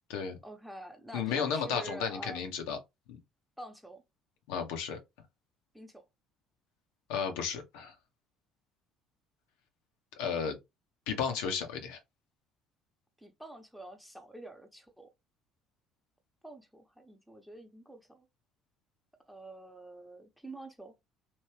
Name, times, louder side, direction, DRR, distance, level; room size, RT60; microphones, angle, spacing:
voice 1, 0.4-2.4 3.6-4.0 5.7-6.0 13.2-15.1 16.4-18.3 19.2-20.9, right 1 dB, ahead, 0.9 m, -47 dB
voice 2, 1.1-2.8 4.5-5.0 7.1-7.9 10.2-10.6 11.1-12.0, left 6 dB, 70° left, 0.7 m, -33 dB
3.0 x 2.6 x 3.1 m
hypercardioid pair, 55°, 0 cm